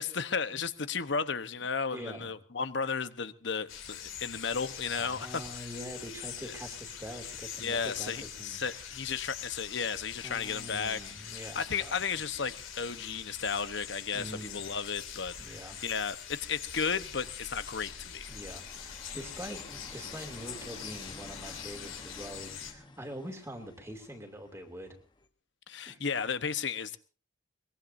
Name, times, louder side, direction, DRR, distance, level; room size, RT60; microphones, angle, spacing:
voice 1, 0.0-5.4 6.4-6.5 7.6-18.3 25.7-27.0, left 5 dB, 60° left, 1.0 m, -34 dB
voice 2, 1.9-2.3 4.9-8.6 10.2-12.0 14.1-14.7 15.4-15.8 18.3-24.9 25.9-26.0, equal, 15° right, 2.4 m, -44 dB
sound 1, 3.7-22.7, left 8 dB, 80° left, 2.6 m, -44 dB
sound 2, 16.6-25.3, left 2 dB, 25° left, 1.1 m, -52 dB
23.0 x 21.0 x 2.7 m
head